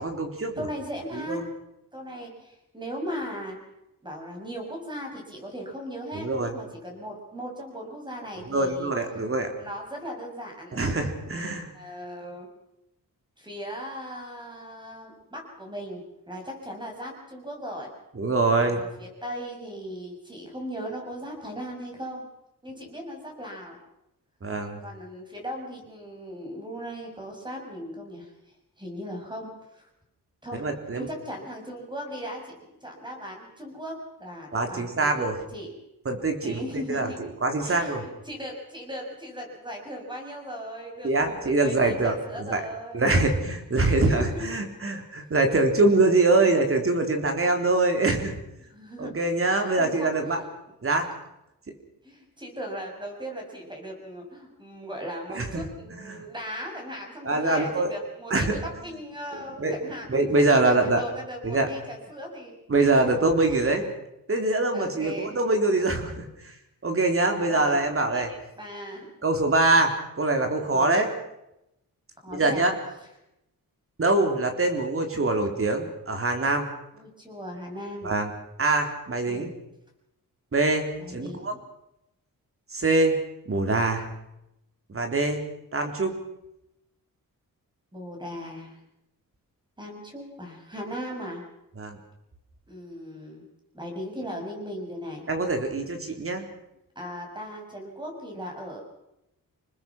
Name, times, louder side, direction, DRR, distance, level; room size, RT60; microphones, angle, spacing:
voice 1, 0.0-0.6 1.1-1.4 6.1-6.5 8.5-9.5 10.7-11.7 18.2-18.8 24.4-24.8 30.6-31.1 34.5-35.3 36.1-37.1 37.4-38.0 41.0-42.6 42.9-48.4 49.0-50.4 50.8-51.1 55.4-55.6 55.9-56.3 57.3-57.9 58.3-58.6 59.6-59.8 60.1-61.0 61.4-61.7 62.7-63.9 64.3-66.3 66.8-68.3 69.2-71.1 72.3-72.7 74.0-76.7 78.0-78.3 78.6-79.5 80.5-81.5 82.7-83.1 83.5-84.1 84.9-85.4 85.7-86.1 91.8-92.0 95.3-96.4, right 2 dB, 40° right, 4 dB, 3.7 m, -24 dB
voice 2, 0.6-1.5 1.9-3.6 4.0-8.9 9.6-10.8 11.7-12.5 13.4-17.9 18.6-22.3 22.6-23.8 24.8-28.3 28.8-29.9 30.4-30.6 30.9-35.7 36.4-37.3 37.6-43.0 44.0-44.6 48.6-49.1 49.4-50.5 52.0-60.1 60.3-63.2 63.5-63.8 64.7-65.3 67.5-67.8 68.1-68.3 68.6-69.1 70.7-71.0 72.2-72.7 76.9-78.1 79.3-79.5 81.0-81.6 87.9-88.8 89.8-91.4 92.7-93.4 93.7-95.3 97.0-98.8, equal, 15° right, 1 dB, 6.9 m, -38 dB
27.0 x 20.0 x 6.1 m, 0.86 s
wide cardioid pair, 125°, 34 cm